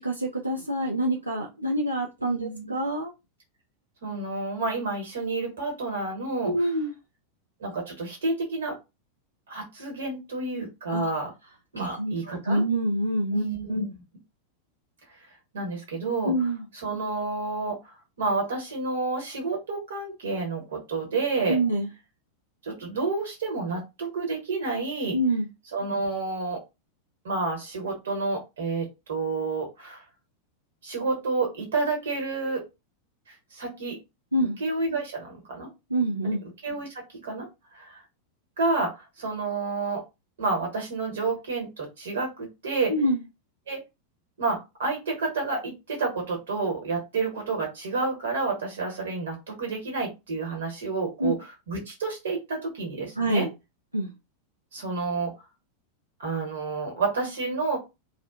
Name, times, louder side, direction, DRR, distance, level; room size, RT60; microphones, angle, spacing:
voice 1, 0.0-3.1 6.4-6.9 10.9-11.0 11.7-13.8 16.2-16.6 21.5-21.9 25.1-25.5 34.3-34.6 35.9-36.4 42.9-43.2 51.2-51.3 53.2-53.5 53.9-54.1, right 1 dB, 85° right, 0.3 m, -26 dB
voice 2, 2.2-2.7 4.0-6.5 7.6-8.8 9.5-11.3 11.7-12.6 13.3-13.8 15.5-16.3 16.7-17.8 18.2-21.6 22.6-25.2 25.7-26.6 27.2-30.0 30.8-32.6 33.3-34.0 34.6-35.7 36.2-36.3 36.6-37.5 37.7-38.0 38.6-40.0 40.4-42.9 43.7-43.8 44.4-53.5 54.7-55.3 56.2-57.8, right 3 dB, 60° right, 1.1 m, -29 dB
2.5 x 2.1 x 2.4 m
figure-of-eight pair, 90°, 0 cm